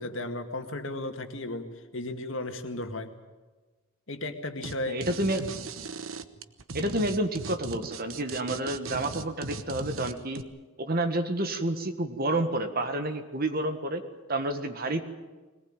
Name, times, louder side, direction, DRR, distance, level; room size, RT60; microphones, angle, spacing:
voice 1, 0.0-3.1 4.1-5.0 5.3-5.5, left 2 dB, 70° left, 6 dB, 2.0 m, -35 dB
sound 1, 4.6-4.7 5.0-10.4, right 4 dB, 90° right, 1.1 m, -38 dB
voice 2, 4.9-5.4 6.7-10.4 10.8-14.0 14.3-15.0, right 1 dB, 50° right, 8 dB, 1.7 m, -29 dB
21.5 x 19.0 x 9.0 m, 1.2 s
head